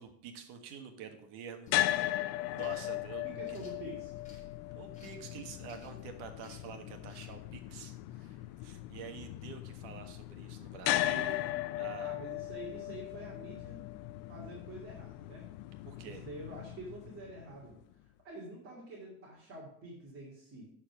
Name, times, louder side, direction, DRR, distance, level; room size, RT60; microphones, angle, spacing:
voice 1, 0.0-1.7 2.0-2.1 2.5-3.6 4.7-8.4 8.6-12.2 15.9-16.2, right 6 dB, 75° right, 6 dB, 1.6 m, -48 dB
sound 1, 1.6-2.0 2.6-2.8 3.4-4.4 4.9-5.2 5.6-6.0 6.4-6.7 7.1-7.3, left 3 dB, 20° left, 2.4 m, -61 dB
sound 2, 1.7-17.8, left 15 dB, 80° left, 0.6 m, -38 dB
voice 2, 3.2-4.1 12.0-13.8 14.3-15.5 16.0-20.7, right 2 dB, 35° right, -4 dB, 2.6 m, -47 dB
12.0 x 4.5 x 6.0 m, 0.68 s
cardioid pair, 155°, 39 cm